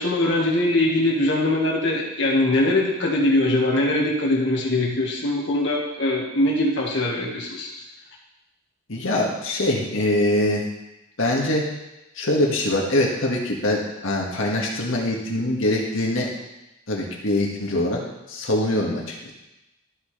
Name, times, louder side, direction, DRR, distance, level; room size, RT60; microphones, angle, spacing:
voice 1, 0.0-7.7, left 1 dB, 65° left, -3 dB, 1.8 m, -22 dB
voice 2, 8.9-10.6 11.2-11.6 12.2-16.3 16.9-18.0 18.3-19.3, left 1 dB, 85° left, -1 dB, 1.9 m, -23 dB
13.0 x 6.3 x 3.4 m, 0.95 s
head